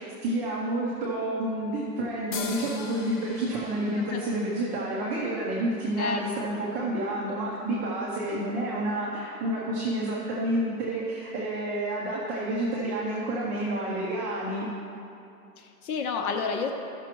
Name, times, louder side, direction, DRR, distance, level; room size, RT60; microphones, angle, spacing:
voice 1, 0.0-14.7, right 1 dB, 15° right, -5 dB, 0.6 m, -29 dB
sound 1, 2.3-5.9, left 5 dB, 30° left, 0.6 m, -42 dB
voice 2, 15.6-16.7, left 5 dB, 70° left, 3 dB, 0.9 m, -30 dB
14.5 x 6.1 x 3.0 m, 2.7 s
hypercardioid pair, 160°, 46 cm